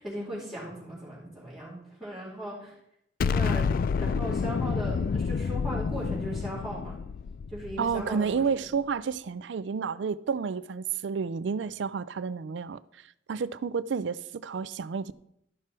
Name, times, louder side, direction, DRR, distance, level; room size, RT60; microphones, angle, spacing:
voice 1, 0.0-2.7 3.2-7.0 7.5-8.4, equal, ahead, 3.9 m, -38 dB
Explosion, 3.2-8.4, left 5 dB, 50° left, 0.3 m, -29 dB
voice 2, 7.8-15.1, right 6 dB, 75° right, 0.4 m, -31 dB
13.0 x 6.1 x 4.4 m
head